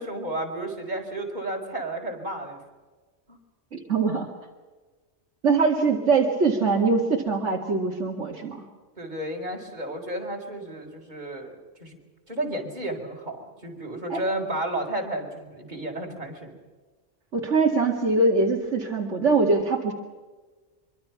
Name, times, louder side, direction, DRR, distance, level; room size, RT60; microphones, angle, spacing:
voice 1, 0.0-2.6 3.3-3.4 9.0-11.5 11.8-12.0 12.3-16.5, right 1 dB, 40° right, 1 dB, 4.3 m, -32 dB
voice 2, 3.7-4.3 5.4-8.6 14.1-14.2 17.3-19.9, right 3 dB, 75° right, 0 dB, 2.5 m, -23 dB
24.5 x 24.0 x 5.9 m, 1.3 s
omnidirectional pair, 1.2 m